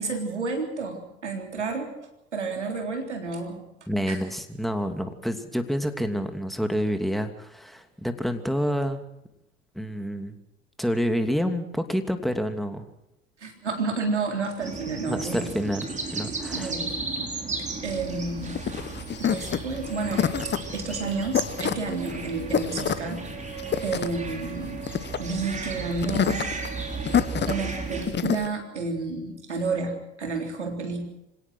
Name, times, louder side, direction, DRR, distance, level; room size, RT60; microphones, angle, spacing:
voice 1, 0.0-1.9 2.3-3.6 4.1-4.2 13.4-15.5 16.5-17.3 17.8-18.6 19.2-20.3 20.7-23.3 23.8-24.8 25.2-26.5 27.5-31.0, right 4 dB, 90° right, 3 dB, 3.7 m, -30 dB
voice 2, 3.9-9.0 9.7-10.4 10.8-12.9 15.0-16.7, equal, ahead, 7 dB, 2.8 m, -28 dB
sound 1, 14.6-28.1, right 3 dB, 20° right, 4.6 m, -35 dB
sound 2, 17.9-28.5, left 9 dB, 30° left, 1.4 m, -28 dB
sound 3, 19.7-28.7, right 13 dB, 65° right, 2.2 m, -43 dB
26.0 x 17.5 x 6.3 m, 0.87 s
figure-of-eight pair, 65°, 34 cm